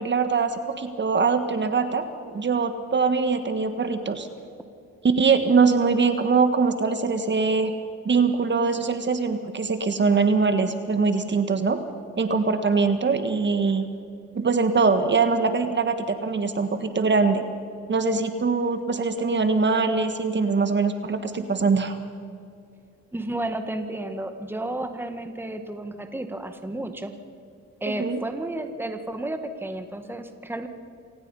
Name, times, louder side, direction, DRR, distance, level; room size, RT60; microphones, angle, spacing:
voice 1, 0.0-2.0 2.3-4.3 5.0-7.7 8.0-11.8 12.2-13.9 14.3-17.4 17.9-22.0 27.9-28.2, right 4 dB, 35° right, 8 dB, 1.5 m, -22 dB
voice 2, 23.1-27.1 27.8-30.7, right 1 dB, 5° right, 7 dB, 1.6 m, -32 dB
27.0 x 18.0 x 5.5 m, 2.4 s
cardioid pair, 90°, 30 cm